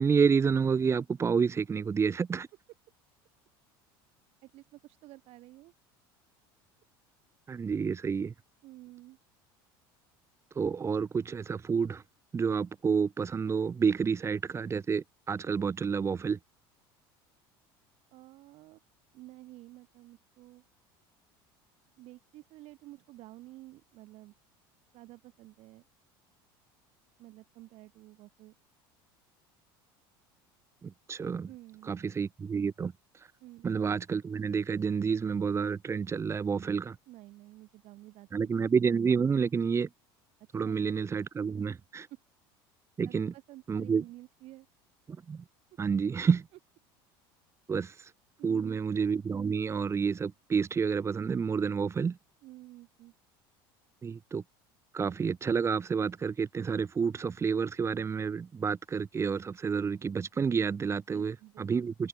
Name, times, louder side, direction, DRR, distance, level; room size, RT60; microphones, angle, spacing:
voice 1, 0.0-2.5 7.5-8.3 10.6-12.0 12.3-16.4 30.8-31.5 31.9-32.9 33.6-37.0 38.3-39.9 40.5-42.1 43.0-43.3 43.7-44.0 45.3-45.4 45.8-46.5 47.7-47.9 48.4-52.2 54.0-54.4 54.9-62.1, right 6 dB, 25° right, 0.6 m, -29 dB
voice 2, 4.4-5.7 8.6-9.2 18.1-18.8 19.1-20.6 22.0-24.3 24.9-25.8 27.2-28.6 31.5-32.0 33.4-33.7 37.1-38.5 40.6-40.8 42.1-42.2 43.0-44.7 48.4-48.8 52.4-53.1 61.1-61.7, right 18 dB, 60° right, 7.6 m, -51 dB
open air
supercardioid pair, 95°, 12 cm